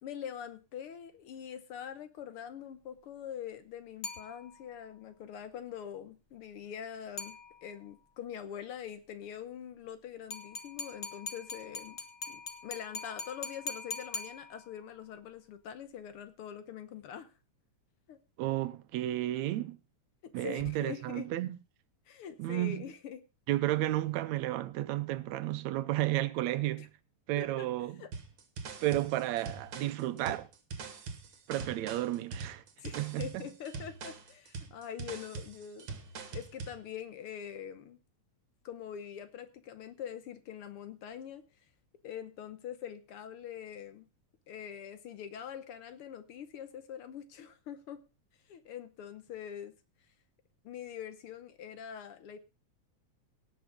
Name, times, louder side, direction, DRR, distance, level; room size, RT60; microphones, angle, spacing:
voice 1, 0.0-12.0 12.3-17.3 18.1-18.2 20.2-21.3 22.1-23.2 26.8-26.9 27.4-27.7 28.0-28.1 32.8-35.9 36.3-38.0 38.6-41.4 42.0-44.1 44.5-48.0 48.5-49.7 50.6-52.4, left 9 dB, 65° left, 1.5 m, -44 dB
sound 1, 4.0-4.9 7.2-7.9 10.3-14.9, left 4 dB, 45° left, 1.0 m, -42 dB
voice 2, 18.4-19.8 20.3-21.5 22.4-22.8 23.5-26.9 27.3-28.0 28.8-30.5 31.5-32.6 33.0-33.5, right 15 dB, 75° right, 2.0 m, -32 dB
sound 2, 28.1-36.8, right 4 dB, 50° right, 2.2 m, -43 dB
17.5 x 6.3 x 5.1 m
omnidirectional pair, 3.4 m